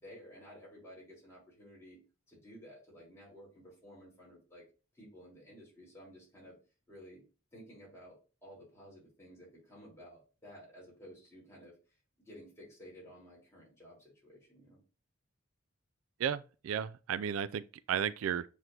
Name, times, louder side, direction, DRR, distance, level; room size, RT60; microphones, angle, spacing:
voice 1, 0.0-2.0 2.3-4.6 4.9-6.6 6.9-7.2 7.5-11.8 12.2-14.8, equal, 15° left, 3.6 m, -54 dB
voice 2, 16.2-18.4, right 8 dB, 80° right, 0.3 m, -34 dB
7.8 x 4.5 x 2.7 m
head